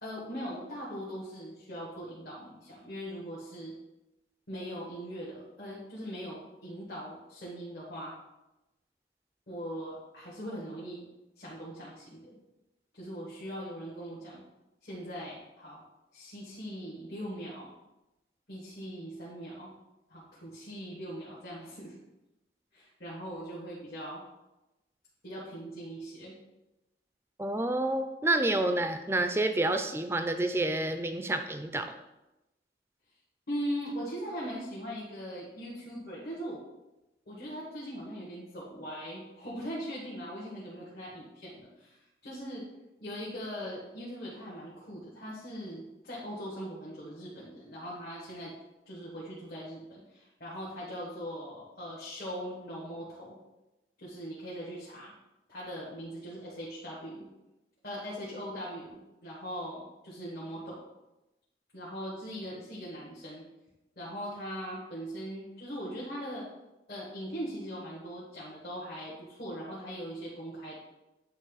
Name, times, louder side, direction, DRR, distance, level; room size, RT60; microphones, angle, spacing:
voice 1, 0.0-3.7 4.5-8.1 9.5-11.0 11.4-12.4 12.9-14.4 14.8-15.8 16.1-17.7 18.5-19.7 20.1-22.0 22.7-24.2 25.2-26.4 33.5-36.6 37.2-42.7 43.0-48.5 48.8-53.4 54.0-55.1 55.5-57.3 57.8-60.8 61.7-63.5 63.9-66.5 66.9-70.8, equal, 65° left, -7 dB, 1.6 m, -40 dB
voice 2, 27.4-31.9, right 2 dB, 15° right, 7 dB, 0.4 m, -29 dB
8.8 x 3.0 x 4.0 m, 0.98 s
head